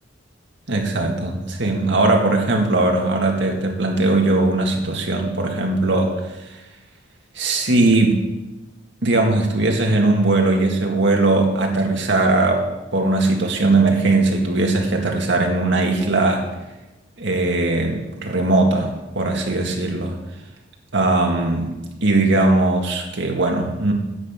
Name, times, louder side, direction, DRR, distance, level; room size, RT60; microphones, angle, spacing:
voice 1, 0.7-6.2 7.4-8.2 9.0-16.5 17.2-20.2 20.9-21.7 22.0-23.9, right 2 dB, 65° right, 1 dB, 2.1 m, -19 dB
10.5 x 8.2 x 5.9 m, 1.0 s
head